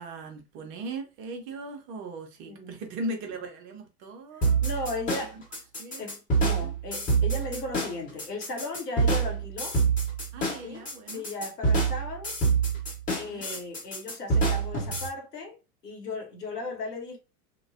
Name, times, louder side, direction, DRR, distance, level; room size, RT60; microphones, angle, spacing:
voice 1, 0.0-4.6 5.1-5.4 5.8-6.0 6.6-6.7 10.3-11.2 13.2-13.5, right 2 dB, 25° right, 0.5 m, -38 dB
voice 2, 2.5-2.8 4.4-5.4 6.0-9.8 10.6-10.8 11.1-12.3 13.2-15.6 15.8-17.2, left 2 dB, 80° left, 0.9 m, -36 dB
sound 1, 4.4-15.1, right 4 dB, 15° left, 1.0 m, -26 dB
3.1 x 2.1 x 2.4 m
figure-of-eight pair, 90°, 47 cm